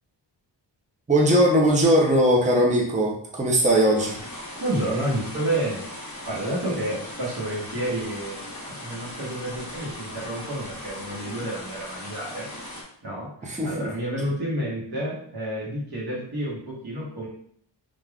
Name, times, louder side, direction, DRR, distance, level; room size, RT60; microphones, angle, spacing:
voice 1, 1.1-4.2 13.4-13.9, equal, 15° right, -2 dB, 0.6 m, -20 dB
sound 1, 3.9-12.8, left 1 dB, 40° left, 0.9 m, -38 dB
voice 2, 4.6-5.8 6.3-8.5 8.8-12.5 13.0-17.3, right 1 dB, 55° right, -5 dB, 1.1 m, -30 dB
3.4 x 2.4 x 2.3 m, 0.62 s
wide cardioid pair, 90°, 45 cm